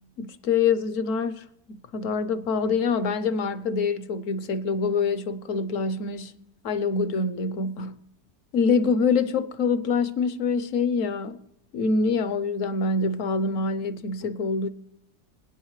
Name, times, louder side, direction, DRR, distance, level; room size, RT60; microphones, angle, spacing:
voice 1, 0.2-6.3 6.6-8.0 8.5-11.4 11.7-14.7, left 4 dB, 60° left, 0.9 m, -25 dB
24.5 x 9.2 x 3.1 m
omnidirectional pair, 1.8 m